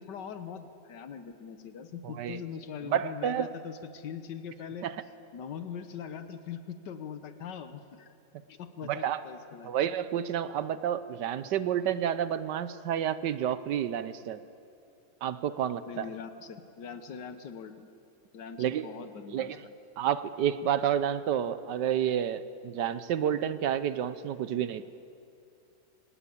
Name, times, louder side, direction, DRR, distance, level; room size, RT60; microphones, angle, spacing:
voice 1, 0.0-4.9 5.3-8.1 8.5-9.7 15.9-17.9 18.3-19.6, left 7 dB, 80° left, 9 dB, 1.7 m, -42 dB
voice 2, 2.0-2.4 2.8-3.5 4.8-5.0 8.8-9.2 9.6-14.4 15.2-16.1 18.6-18.9 19.3-19.6 20.0-24.9, right 9 dB, 80° right, 13 dB, 1.4 m, -30 dB
25.0 x 19.0 x 8.6 m, 2.6 s
omnidirectional pair, 1.8 m